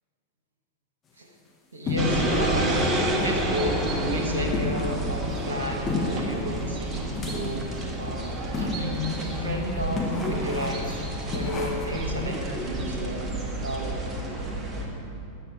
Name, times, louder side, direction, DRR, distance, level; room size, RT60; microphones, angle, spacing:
voice 1, 1.7-2.9 3.2-11.0 11.3-13.3 13.6-14.0, equal, 70° right, 1 dB, 1.4 m, -32 dB
sound 1, 1.9-2.4 2.8-2.9 3.2-3.5 3.8-3.9 4.5-5.1 5.9-6.3 7.1-7.7 8.5-9.0 9.3-9.4 9.9-10.9 11.3-12.0, left 3 dB, 25° left, 1.3 m, -31 dB
sound 2, 2.0-14.8, right 1 dB, 20° right, 1.9 m, -29 dB
12.0 x 8.7 x 4.8 m, 2.6 s
figure-of-eight pair, 90°, 0 cm